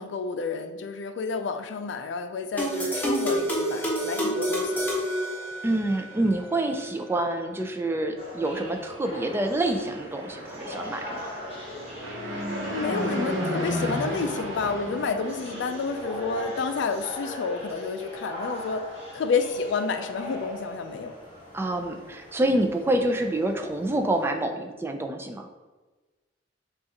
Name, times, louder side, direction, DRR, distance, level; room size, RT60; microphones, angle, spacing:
voice 1, 0.0-5.1 12.7-21.1, left 4 dB, 70° left, 9 dB, 0.4 m, -30 dB
sound 1, 2.6-6.0, equal, 10° left, 0.9 m, -28 dB
voice 2, 5.6-11.3 21.5-25.5, right 1 dB, 15° right, 5 dB, 0.3 m, -27 dB
sound 2, 8.2-24.3, left 1 dB, 30° right, 1.5 m, -40 dB
Fixed-wing aircraft airplane, 9.5-16.8, equal, 70° right, 1.0 m, -34 dB
6.3 x 2.5 x 2.9 m, 1.2 s
head